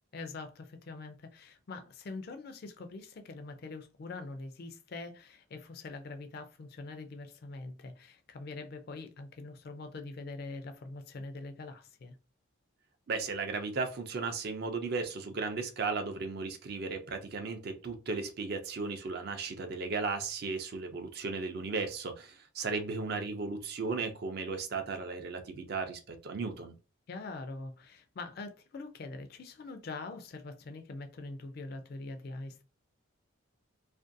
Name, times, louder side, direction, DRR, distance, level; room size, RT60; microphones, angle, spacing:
voice 1, 0.1-12.2 27.1-32.6, left 3 dB, 50° left, 0.3 m, -44 dB
voice 2, 13.1-26.7, right 4 dB, 50° right, 0.4 m, -35 dB
2.5 x 2.2 x 2.5 m
head